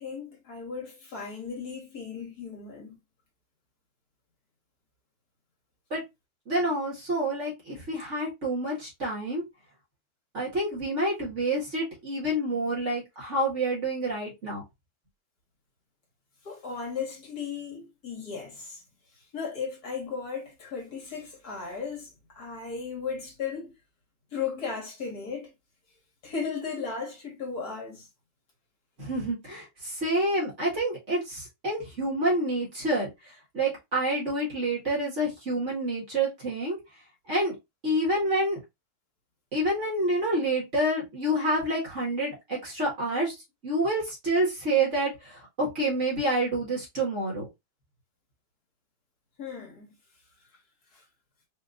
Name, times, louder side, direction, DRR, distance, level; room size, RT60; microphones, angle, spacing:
voice 1, 0.0-2.9 16.4-18.8 19.3-23.7 24.3-25.5 26.2-28.1 49.4-49.9 50.9-51.0, left 5 dB, 60° left, 2.1 m, -36 dB
voice 2, 6.5-9.4 10.3-14.6 29.0-36.8 37.3-37.6 37.8-38.6 39.5-43.4 43.6-47.5, right 1 dB, 40° right, 2.2 m, -28 dB
5.1 x 3.0 x 2.5 m
omnidirectional pair, 1.9 m